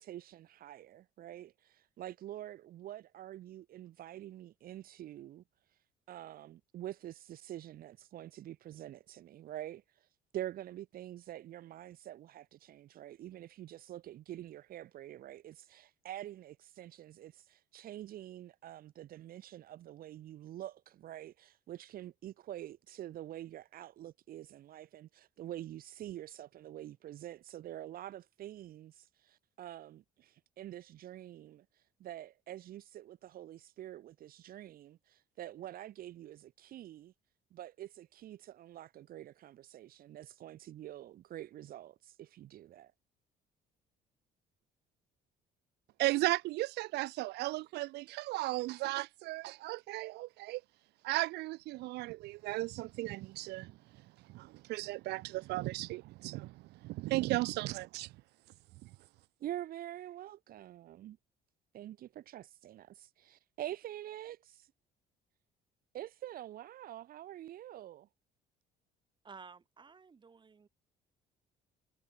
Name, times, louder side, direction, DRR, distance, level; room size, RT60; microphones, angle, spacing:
voice 1, 0.0-5.4 6.1-10.1 10.3-37.1 37.5-42.9 59.4-61.2 61.7-64.7 65.9-68.1, right 13 dB, 60° right, 0.9 m, -46 dB
voice 2, 46.0-50.6 51.0-53.7 54.3-56.5 56.8-58.1, right 19 dB, 80° right, 0.6 m, -35 dB
voice 3, 69.2-70.7, right 5 dB, 25° right, 2.1 m, -54 dB
cardioid pair, 110°, 17 cm